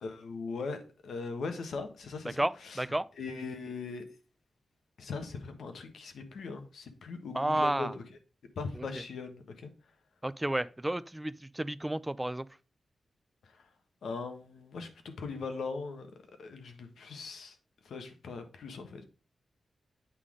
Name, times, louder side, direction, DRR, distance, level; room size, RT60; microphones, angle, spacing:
voice 1, 0.0-2.8 3.2-4.0 5.0-8.0 8.6-9.7 13.4-13.6 14.0-16.1 16.4-17.6 17.8-19.0, left 4 dB, 90° left, 1.1 m, -40 dB
voice 2, 2.4-3.1 7.3-7.9 8.8-8.9 10.2-12.5, right 1 dB, 10° right, 0.3 m, -31 dB
8.3 x 3.7 x 4.9 m
wide cardioid pair, 95°, 0 cm